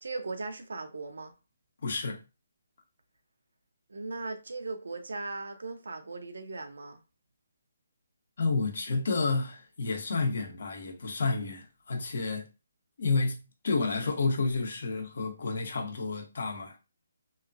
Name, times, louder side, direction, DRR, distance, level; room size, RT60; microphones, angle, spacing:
voice 1, 0.0-1.3 3.9-7.0, right 3 dB, 80° right, 0.6 m, -38 dB
voice 2, 1.8-2.2 8.4-12.5 13.0-16.8, left 3 dB, 60° left, 1.0 m, -30 dB
2.9 x 2.4 x 2.5 m
hypercardioid pair, 155°, 0 cm